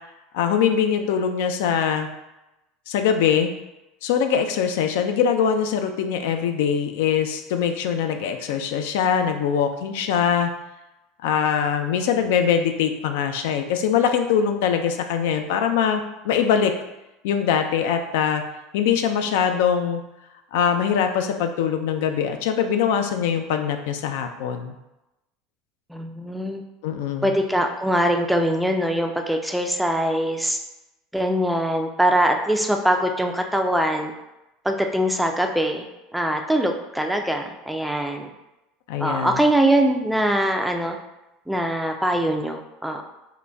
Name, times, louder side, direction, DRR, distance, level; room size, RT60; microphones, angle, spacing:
voice 1, 0.3-2.1 2.9-3.5 4.0-10.5 11.2-16.7 17.2-18.4 18.7-20.0 20.5-24.8 26.8-27.4 38.9-39.4, left 7 dB, 80° left, 6 dB, 0.4 m, -22 dB
voice 2, 25.9-26.6 27.2-30.6 31.1-34.1 34.6-35.8 36.1-38.3 39.0-41.0 41.5-43.0, right 1 dB, 5° right, 4 dB, 0.3 m, -22 dB
3.8 x 2.1 x 3.4 m, 0.94 s
supercardioid pair, 135°, 0 cm